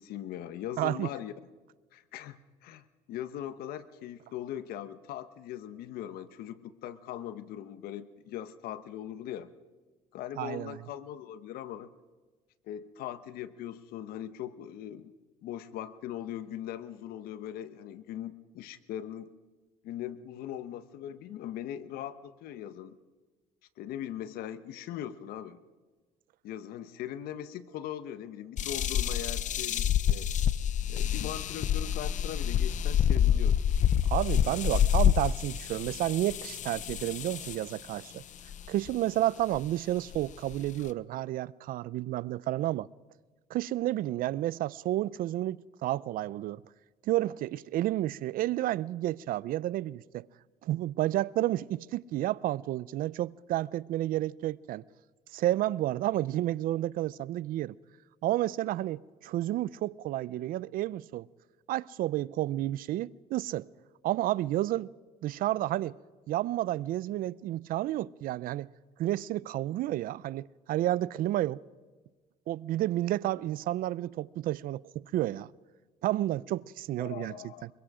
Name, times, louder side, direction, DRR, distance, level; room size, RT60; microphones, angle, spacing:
voice 1, 0.0-1.3 1.9-9.5 10.1-11.9 12.6-15.1 15.4-19.3 19.8-23.0 23.8-25.6 26.4-30.3 30.9-33.7 77.0-77.6, left 11 dB, 75° left, 1.2 m, -40 dB
voice 2, 0.8-1.1 10.4-10.8 34.0-38.2 38.7-42.9 43.5-46.6 47.1-50.3 50.6-54.8 55.3-57.8 58.2-61.3 61.7-63.7 64.0-64.9 65.2-66.0 66.3-68.7 69.0-71.6 72.5-75.5 76.0-77.3 77.6-77.7, right 14 dB, 65° right, 0.5 m, -31 dB
sound 1, 28.6-37.7 38.5-38.9 39.6-39.7 40.1-40.9, left 9 dB, 55° left, 0.7 m, -27 dB
24.0 x 23.0 x 5.0 m
cardioid pair, 95°, 16 cm